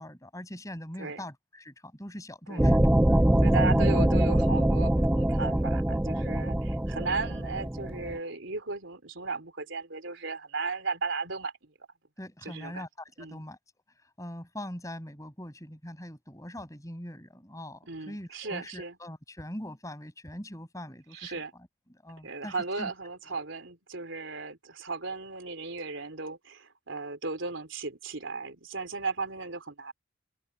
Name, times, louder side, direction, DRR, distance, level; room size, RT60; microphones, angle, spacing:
voice 1, 0.0-3.4 12.2-13.6 14.2-21.7 22.0-22.9, left 1 dB, 15° left, 6.5 m, -42 dB
sound 1, 2.6-8.2, right 1 dB, 5° right, 0.3 m, -24 dB
voice 2, 3.4-11.5 12.4-12.9 13.2-13.4 17.9-19.0 21.1-21.5 22.2-29.9, right 4 dB, 70° right, 3.4 m, -35 dB
head